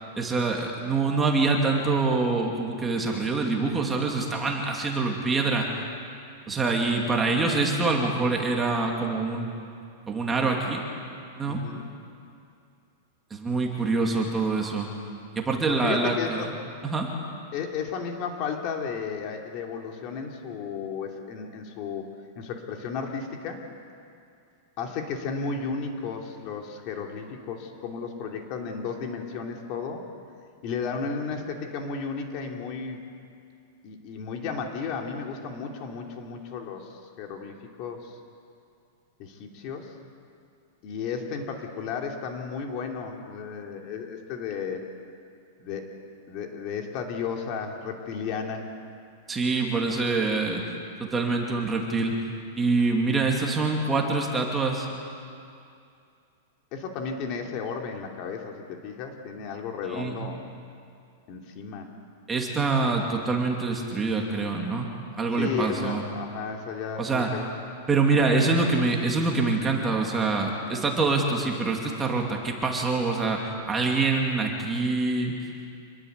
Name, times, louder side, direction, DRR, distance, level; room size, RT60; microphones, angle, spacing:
voice 1, 0.1-5.7 6.5-9.7 10.1-10.8 11.4-11.6 13.3-14.9 15.3-16.5 16.8-17.1 49.3-50.6 51.0-52.1 52.6-54.9 59.9-60.3 62.3-64.9 65.2-66.0 67.0-67.3 67.9-75.4, right 3 dB, 10° right, 0 dB, 2.5 m, -25 dB
voice 2, 11.5-11.8 15.7-16.5 17.5-22.1 22.3-23.6 24.8-30.0 30.6-33.0 33.8-38.2 39.2-39.9 40.8-44.8 45.6-45.9 46.3-48.7 56.7-60.4 61.3-61.9 65.3-67.4, left 5 dB, 35° left, 2 dB, 2.8 m, -33 dB
26.5 x 21.0 x 8.2 m, 2.4 s
supercardioid pair, 160°, 0 cm